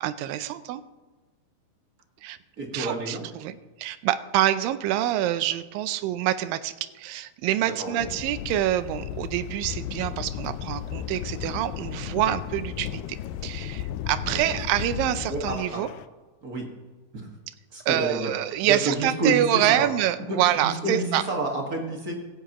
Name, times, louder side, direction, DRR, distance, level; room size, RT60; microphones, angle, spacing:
voice 1, 0.0-0.8 2.2-2.4 2.7-13.2 13.4-15.9 17.9-21.2, right 12 dB, 90° right, 13 dB, 2.4 m, -26 dB
voice 2, 2.6-3.2 7.6-8.1 14.1-14.6 15.3-15.8 16.4-16.7 17.1-17.3 17.7-18.3 18.6-19.9 20.3-22.1, right 2 dB, 35° right, 0 dB, 1.5 m, -29 dB
sound 1, 8.0-16.1, left 11 dB, 85° left, 2.3 m, -35 dB
16.0 x 16.0 x 3.0 m, 1.2 s
omnidirectional pair, 3.9 m